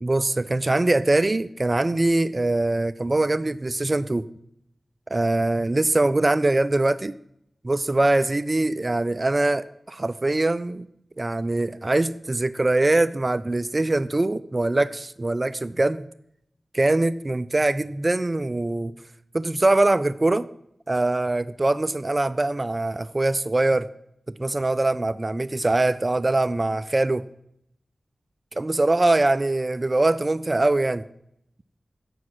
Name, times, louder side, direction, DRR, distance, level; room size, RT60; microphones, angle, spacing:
voice 1, 0.0-4.3 5.1-7.2 7.6-10.8 11.2-16.1 16.7-18.9 19.3-20.5 20.9-23.9 24.4-27.2 28.5-31.0, right 2 dB, 35° right, 14 dB, 0.4 m, -22 dB
8.4 x 6.3 x 7.9 m, 0.74 s
cardioid pair, 55°, 0 cm